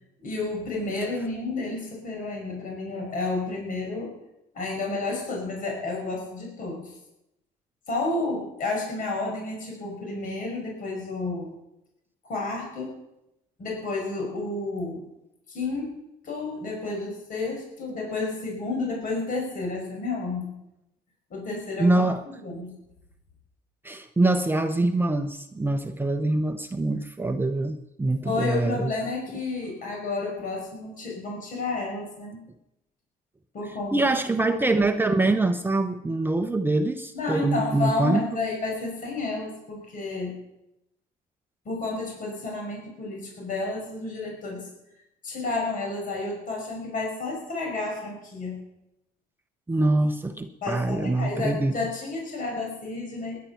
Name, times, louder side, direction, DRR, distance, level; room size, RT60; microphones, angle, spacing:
voice 1, 0.2-4.1 4.5-7.0 7.9-11.5 12.2-12.9 13.6-15.0 15.5-15.9 16.2-20.6 21.3-22.0 22.4-22.7 28.2-32.4 33.5-34.0 37.1-40.3 41.7-44.7 45.2-48.6 50.6-53.4, left 3 dB, 55° left, 0 dB, 5.7 m, -31 dB
voice 2, 21.8-22.2 23.8-28.9 33.9-38.2 49.7-51.8, right 2 dB, 10° right, 7 dB, 0.8 m, -24 dB
19.5 x 10.5 x 5.8 m, 0.87 s
cardioid pair, 110°, 17 cm